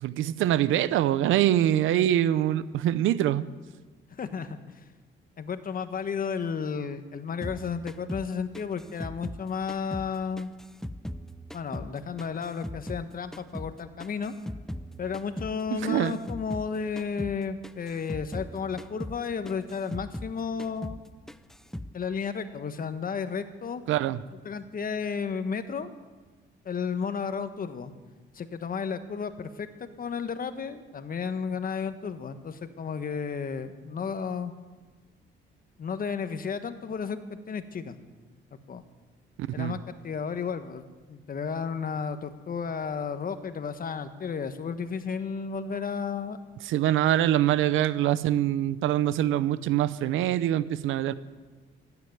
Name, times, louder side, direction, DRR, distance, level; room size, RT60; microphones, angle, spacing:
voice 1, 0.0-3.5 15.7-16.2 23.9-24.2 39.4-39.7 46.7-51.1, right 12 dB, 85° right, 16 dB, 0.7 m, -24 dB
voice 2, 4.1-4.6 5.4-10.5 11.5-14.3 15.0-21.0 21.9-23.8 24.4-25.9 26.6-27.9 28.3-29.7 30.0-34.5 35.8-38.0 38.7-38.8 39.5-46.4, left 6 dB, 45° left, 10 dB, 1.3 m, -33 dB
sound 1, 7.4-10.1 10.4-13.1 13.3-16.7 17.0-17.4 17.6-20.3 20.6-21.0 21.3-21.9, equal, ahead, 0.6 m, -39 dB
15.5 x 9.5 x 9.3 m, 1.4 s
cardioid pair, 90°, 20 cm